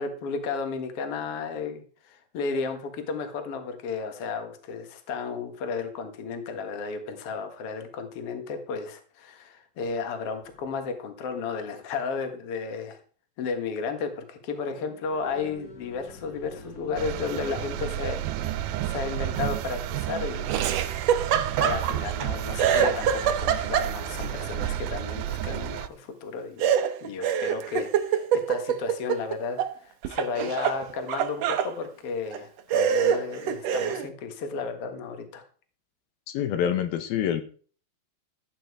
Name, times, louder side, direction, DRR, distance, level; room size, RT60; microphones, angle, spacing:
voice 1, 0.0-13.0 13.4-20.6 21.6-26.7 27.0-35.4, left 5 dB, 50° left, 7 dB, 2.2 m, -33 dB
sound 1, 10.4-10.8 14.4-19.5 23.7-25.0, left 3 dB, 30° left, 2.3 m, -46 dB
sound 2, 17.0-25.9, right 13 dB, 85° right, 2.5 m, -31 dB
Laughter, 20.5-22.3 22.6-24.2 26.6-29.7 30.0-31.7 32.3-32.4 32.7-34.1, right 8 dB, 70° right, 1.7 m, -25 dB
voice 2, 36.3-37.4, left 9 dB, 85° left, 9 dB, 3.0 m, -26 dB
14.5 x 9.0 x 4.9 m, 0.43 s
omnidirectional pair, 4.1 m